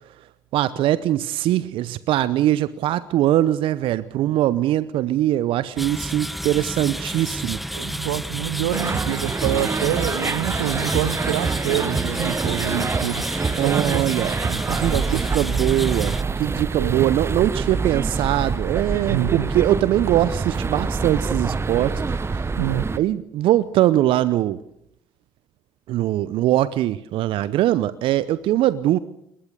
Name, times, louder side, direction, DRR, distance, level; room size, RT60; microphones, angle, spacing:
voice 1, 0.5-7.8 13.6-14.4 14.7-22.5 23.0-24.6 25.9-29.0, right 13 dB, 60° right, 17 dB, 0.7 m, -22 dB
sound 1, 5.8-16.2, equal, ahead, 1.0 m, -30 dB
voice 2, 7.7-13.3 13.6-14.0 14.5-15.6 16.7-17.1 19.0-19.5 22.6-22.9, right 14 dB, 80° right, 18 dB, 0.9 m, -27 dB
sound 2, 8.7-23.0, right 4 dB, 25° right, 1.0 m, -26 dB
21.0 x 20.5 x 6.9 m, 0.77 s
hypercardioid pair, 55°, 10 cm